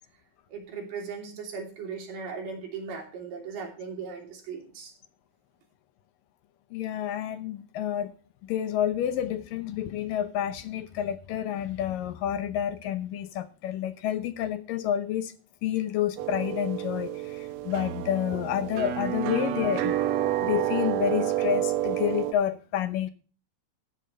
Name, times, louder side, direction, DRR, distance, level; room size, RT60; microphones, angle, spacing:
voice 1, 0.5-4.9, right 5 dB, 65° right, 4.7 m, -38 dB
voice 2, 6.7-8.1 8.4-15.3 15.6-19.9 20.4-23.1, left 10 dB, 75° left, 2.4 m, -29 dB
sound 1, 16.2-22.3, right 13 dB, 85° right, 1.5 m, -29 dB
13.0 x 10.5 x 3.3 m
omnidirectional pair, 4.2 m